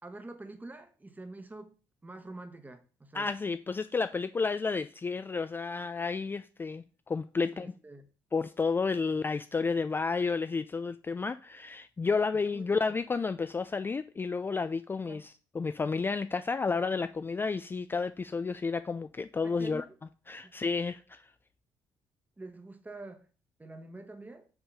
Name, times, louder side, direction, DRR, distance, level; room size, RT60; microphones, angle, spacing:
voice 1, 0.0-1.7 2.0-3.3 7.5-8.1 9.1-9.2 12.3-13.0 15.1-15.2 19.4-19.9 20.4-20.5 22.4-23.3 23.6-24.5, right 2 dB, 20° right, 1.2 m, -46 dB
voice 2, 3.1-7.7 8.3-19.8 20.3-21.3, left 4 dB, 25° left, 0.3 m, -31 dB
5.7 x 3.6 x 5.6 m
supercardioid pair, 70°, 9 cm